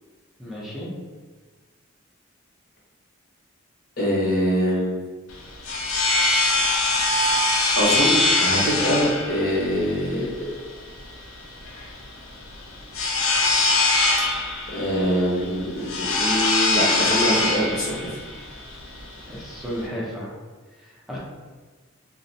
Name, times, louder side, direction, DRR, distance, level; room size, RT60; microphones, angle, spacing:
voice 1, 0.4-0.9 19.3-20.3 20.8-21.2, equal, ahead, -6 dB, 0.5 m, -33 dB
voice 2, 4.0-5.0 7.8-10.5 14.4-18.2, equal, 50° left, -5 dB, 0.8 m, -24 dB
sound 1, 5.3-19.9, left 2 dB, 75° left, 0.4 m, -23 dB
2.4 x 2.0 x 2.6 m, 1.4 s
head